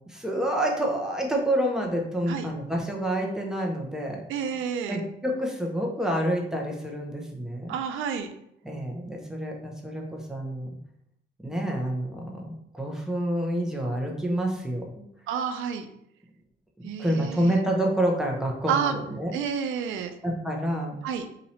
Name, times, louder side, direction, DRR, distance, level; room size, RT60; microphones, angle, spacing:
voice 1, 0.1-4.2 4.9-7.7 8.6-10.8 11.4-15.0 16.8-19.3 20.2-21.0, right 1 dB, 5° right, 0 dB, 0.9 m, -28 dB
voice 2, 4.3-5.0 7.7-8.3 15.3-15.9 16.8-17.6 18.7-18.9 19.3-20.1 21.0-21.3, right 7 dB, 85° right, 7 dB, 0.5 m, -29 dB
2.9 x 2.6 x 4.2 m, 0.76 s
cardioid pair, 90°, 20 cm